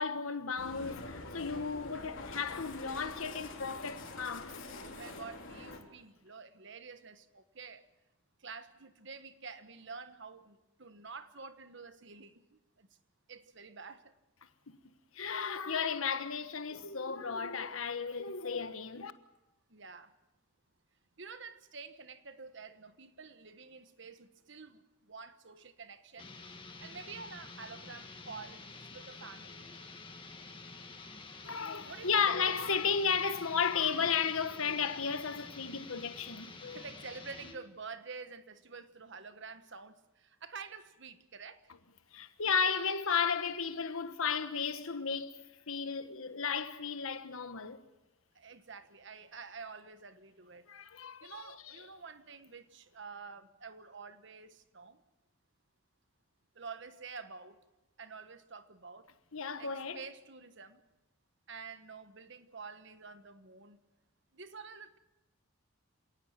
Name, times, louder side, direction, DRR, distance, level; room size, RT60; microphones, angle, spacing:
voice 1, 0.0-4.6 14.7-14.8 15.1-19.1 31.4-36.8 42.1-47.8 50.7-51.9 59.3-60.0, left 6 dB, 80° left, 1.3 m, -34 dB
sound 1, 0.6-5.8, left 2 dB, 65° left, 3.9 m, -46 dB
voice 2, 4.7-7.9 8.4-12.9 13.3-14.1 19.7-20.1 21.2-26.3 26.8-28.6 28.9-29.7 31.9-32.7 36.7-41.7 48.3-50.7 51.2-55.0 56.5-57.6 58.0-59.1 59.6-60.8 61.5-63.8 64.3-65.0, right 5 dB, 55° right, 1.4 m, -49 dB
sound 2, 26.2-37.6, left 3 dB, 25° left, 1.9 m, -49 dB
27.0 x 18.5 x 7.4 m
head